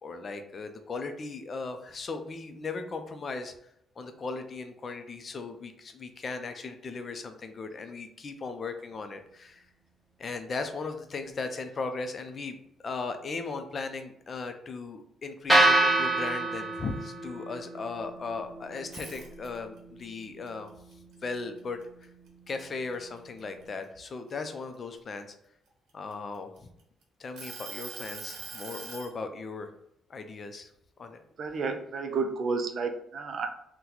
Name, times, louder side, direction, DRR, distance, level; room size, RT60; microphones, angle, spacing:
voice 1, 0.0-3.5 4.0-9.7 10.2-12.6 12.8-20.7 21.2-21.8 22.5-25.3 25.9-26.5 27.2-29.7 30.1-30.7 31.0-31.2, left 4 dB, 45° left, 7 dB, 0.4 m, -37 dB
sound 1, 15.5-23.6, right 2 dB, 5° right, 0.8 m, -30 dB
sound 2, 18.8-19.8 20.2-22.0 22.5-22.7 23.2-25.0 25.7-26.8 27.4-29.1, right 3 dB, 85° right, 0.7 m, -42 dB
voice 2, 31.4-33.5, right 4 dB, 55° right, 6 dB, 0.4 m, -31 dB
2.9 x 2.2 x 3.9 m, 0.76 s
cardioid pair, 90°, 0 cm